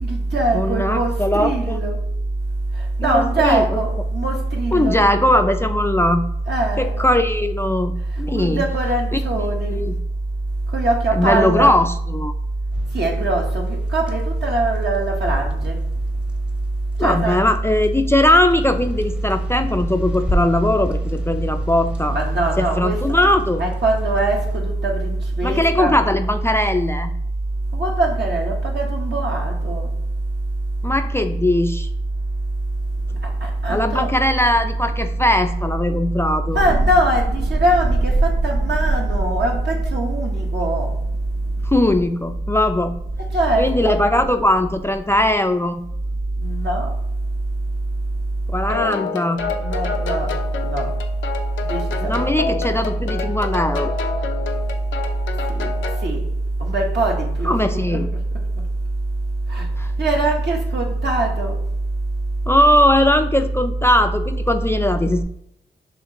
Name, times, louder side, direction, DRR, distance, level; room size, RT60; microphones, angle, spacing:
voice 1, 0.0-2.0 3.0-5.0 6.5-7.1 8.3-9.8 10.7-11.7 12.9-15.7 17.0-17.4 22.1-23.0 23.6-25.9 27.7-29.9 33.4-34.1 36.5-40.9 43.3-44.1 46.4-46.9 49.6-50.3 50.6-50.9 51.6-51.8 52.1-52.3 55.6-55.7 56.0-56.2 56.6-58.0 59.5-59.7 60.0-61.6, right 2 dB, 65° right, 0 dB, 1.2 m, -21 dB
voice 2, 0.5-1.8 3.0-3.6 4.7-6.2 6.8-8.6 9.1-10.0 11.1-12.3 17.0-22.2 22.6-23.7 25.4-27.1 30.8-31.9 33.7-36.6 41.7-43.0 43.6-45.8 48.5-49.4 52.0-53.9 57.4-58.1 59.8-59.9 62.5-65.2, left 1 dB, 15° left, 6 dB, 0.4 m, -19 dB
sound 1, 12.7-24.6, equal, 5° right, 0.7 m, -33 dB
Thunder, 32.8-48.6, right 2 dB, 50° right, 0.8 m, -29 dB
sound 2, 48.7-56.1, left 5 dB, 90° left, 0.5 m, -28 dB
5.7 x 2.8 x 2.9 m, 0.77 s
cardioid pair, 55°, 19 cm